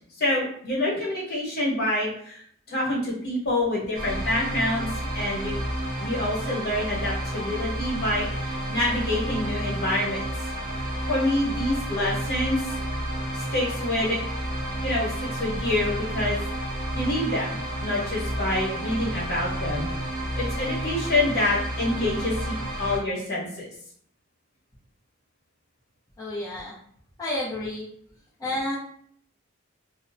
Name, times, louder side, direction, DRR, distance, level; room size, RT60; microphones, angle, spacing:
voice 1, 0.2-2.4 2.7-4.9 5.1-5.5 6.0-10.5 11.1-12.6 13.3-14.2 14.8-16.4 16.9-19.9 20.4-23.7, left 1 dB, 50° left, -6 dB, 1.1 m, -27 dB
sound 1, 3.9-23.0, right 1 dB, 40° right, 0.8 m, -31 dB
voice 2, 26.2-26.7 27.2-27.9 28.4-28.8, left 1 dB, 15° left, -10 dB, 0.6 m, -30 dB
2.7 x 2.0 x 2.6 m, 0.63 s
head